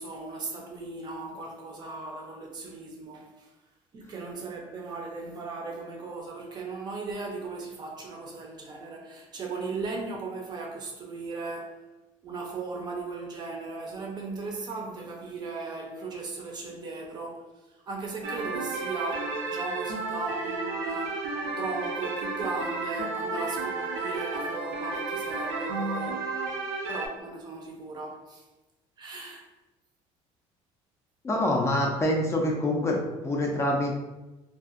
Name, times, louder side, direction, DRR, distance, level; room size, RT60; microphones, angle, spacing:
voice 1, 0.0-3.5 3.9-11.8 12.2-17.5 17.9-21.2 21.6-26.2 26.9-28.4 29.0-29.5, right 3 dB, 35° right, 0.5 m, -37 dB
sound 1, 18.2-27.1, right 3 dB, 80° right, 0.6 m, -32 dB
voice 2, 31.2-33.9, left 1 dB, 20° left, 0.4 m, -26 dB
2.7 x 2.5 x 2.4 m
cardioid pair, 125°, 12 cm